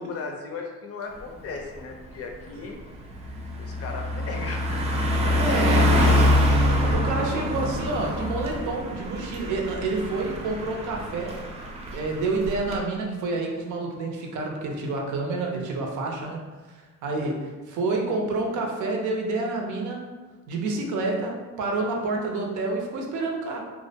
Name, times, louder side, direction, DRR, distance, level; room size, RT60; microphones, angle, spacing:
voice 1, 0.0-2.8 3.6-4.8 5.4-6.6 17.1-17.3, left 4 dB, 55° left, 2 dB, 0.5 m, -36 dB
Car passing by, 1.2-1.4 1.8-12.8, left 1 dB, 20° right, 0.4 m, -25 dB
voice 2, 5.4-6.3 6.8-11.4 11.9-16.4 16.7-20.1 20.5-23.6, right 3 dB, 80° right, 1 dB, 0.5 m, -29 dB
2.4 x 2.1 x 2.7 m, 1.3 s
cardioid pair, 90°, 30 cm